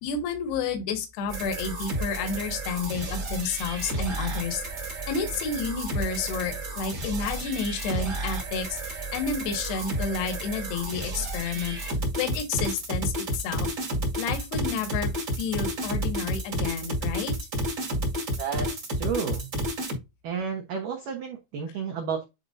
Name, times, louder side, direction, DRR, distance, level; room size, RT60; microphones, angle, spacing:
voice 1, 0.0-4.6 4.9-11.8 12.2-13.7 14.2-15.1 15.4-17.3, left 5 dB, 65° left, 3.3 m, -30 dB
sound 1, 1.3-20.0, right 1 dB, 40° right, 1.5 m, -31 dB
voice 2, 18.4-19.5 20.2-22.3, right 6 dB, 70° right, 2.1 m, -32 dB
10.5 x 4.3 x 2.7 m
omnidirectional pair, 5.3 m